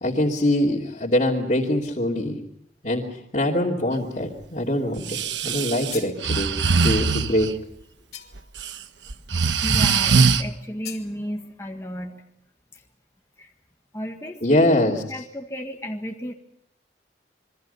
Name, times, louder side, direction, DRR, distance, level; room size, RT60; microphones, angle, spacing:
voice 1, 0.0-2.4 2.8-5.2 5.4-6.5 6.8-7.5 14.4-15.0, left 1 dB, 40° left, -5 dB, 2.9 m, -23 dB
Breathing, 5.0-7.5 8.4-8.7 9.1-10.4, right 5 dB, 85° right, 1.2 m, -21 dB
sound 1, 5.6-6.2 8.1-8.6 10.8-11.1, left 11 dB, 60° left, 3.2 m, -40 dB
voice 2, 9.6-12.2 12.7-12.8 13.4-13.5 13.9-16.3, equal, 15° left, 2 dB, 1.6 m, -34 dB
27.5 x 23.5 x 5.7 m, 0.72 s
head